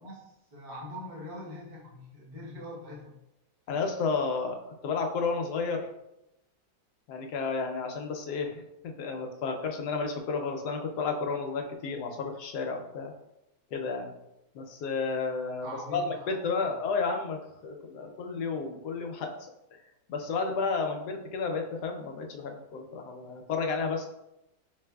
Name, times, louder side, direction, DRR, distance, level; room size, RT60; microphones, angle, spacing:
voice 1, 0.5-3.2 15.6-16.7, left 1 dB, 35° right, -4 dB, 0.9 m, -43 dB
voice 2, 3.7-5.8 7.1-13.1 13.7-14.1 14.5-19.3 20.1-24.1, left 4 dB, 70° left, 3 dB, 1.0 m, -32 dB
4.8 x 3.2 x 2.3 m, 0.87 s
omnidirectional pair, 2.1 m